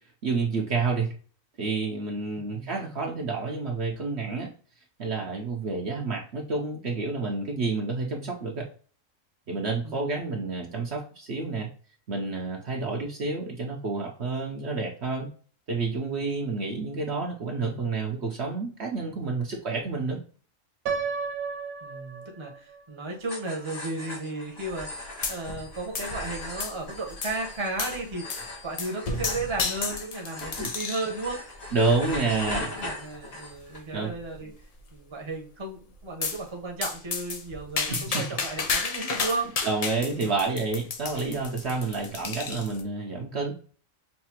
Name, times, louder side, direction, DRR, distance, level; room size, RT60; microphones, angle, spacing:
voice 1, 0.2-1.1 1.6-4.5 5.0-8.7 9.5-11.7 12.1-15.3 15.7-20.2 30.6-30.7 31.7-32.7 33.9-34.1 37.9-38.4 39.6-43.6, right 4 dB, 60° right, 0 dB, 1.0 m, -29 dB
voice 2, 2.4-2.7 9.8-10.1 21.8-31.5 32.2-34.5 34.9-39.5 40.1-40.5 41.7-42.0, right 2 dB, 25° right, 1 dB, 0.9 m, -35 dB
Piano, 20.9-22.8, right 5 dB, 90° right, 1.0 m, -32 dB
sound 1, 23.2-33.8, left 2 dB, 90° left, 2.5 m, -39 dB
sound 2, 25.2-25.7 25.9-26.8 27.2-27.4 27.8-28.0 28.3-28.5 28.8-31.1 31.7-32.1 32.7-32.8 33.1-33.2 33.6-33.7 34.1-34.6 36.2-36.4 36.8-42.8, left 4 dB, 55° left, 0.4 m, -32 dB
5.7 x 2.6 x 2.9 m, 0.41 s
omnidirectional pair, 1.4 m